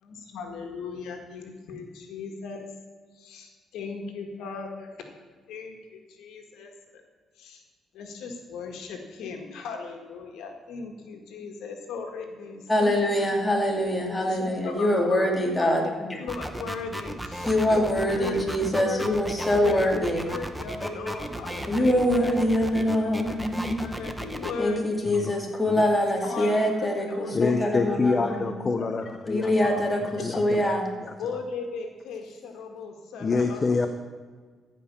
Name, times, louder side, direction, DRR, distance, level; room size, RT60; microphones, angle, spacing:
voice 1, 0.0-2.7 3.1-5.0 5.5-7.0 7.4-7.6 7.9-12.9 14.1-15.1 15.6-17.8 18.1-19.1 19.6-19.8 20.3-22.3 22.9-23.2 23.8-24.9 26.2-27.5 28.3-28.4 28.8-29.1 29.3-29.8 31.2-33.9, left 4 dB, 85° left, 3 dB, 1.7 m, -38 dB
voice 2, 12.7-15.8 17.5-20.3 20.8-21.1 21.7-23.9 24.6-28.4 29.3-30.9, left 1 dB, 10° left, 0 dB, 2.6 m, -24 dB
sound 1, 16.3-24.5, right 1 dB, 5° right, 1.0 m, -35 dB
voice 3, 27.3-29.5 30.2-30.7 31.0-31.4 33.2-33.9, left 4 dB, 35° left, 7 dB, 0.7 m, -26 dB
14.5 x 5.4 x 7.1 m, 1.5 s
cardioid pair, 90°, 0 cm